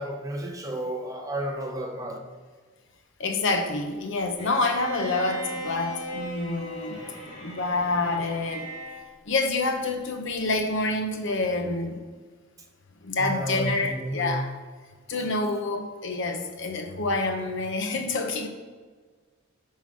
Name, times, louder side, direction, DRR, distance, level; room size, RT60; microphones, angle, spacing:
voice 1, 0.0-2.2 13.2-14.4, right 1 dB, 15° right, 0.6 m, -32 dB
voice 2, 3.2-7.0 7.4-8.7 9.3-12.0 13.0-14.5 15.1-18.5, left 3 dB, 60° left, 0.7 m, -27 dB
Bowed string instrument, 4.4-9.1, equal, 35° left, 2.0 m, -37 dB
5.9 x 3.7 x 6.0 m
head